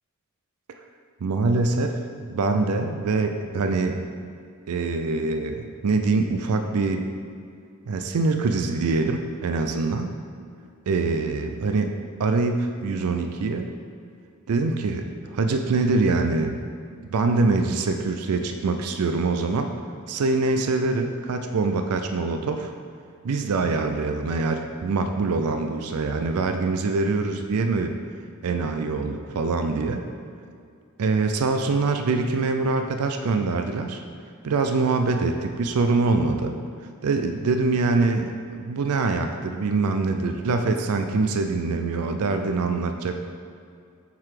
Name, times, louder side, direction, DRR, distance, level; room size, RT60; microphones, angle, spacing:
voice 1, 1.2-2.0 2.3-4.0 4.7-7.1 7.9-10.1 10.9-11.9 12.2-13.7 14.5-16.7 17.1-19.7 20.1-22.7 23.2-27.9 28.4-30.0 31.0-34.0 34.4-36.6 37.0-38.3 38.6-43.2, right 3 dB, 85° right, 6 dB, 0.4 m, -24 dB
7.3 x 3.9 x 4.8 m, 2.3 s
head